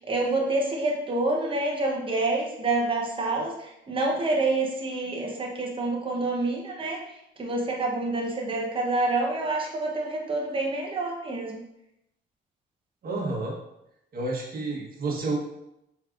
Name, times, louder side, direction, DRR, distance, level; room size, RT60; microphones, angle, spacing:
voice 1, 0.1-7.0 7.4-11.6, right 2 dB, 25° right, -1 dB, 0.9 m, -27 dB
voice 2, 13.0-13.5 14.1-15.4, right 3 dB, 50° right, -2 dB, 1.3 m, -30 dB
4.6 x 3.2 x 2.5 m, 0.83 s
cardioid pair, 90°, 20 cm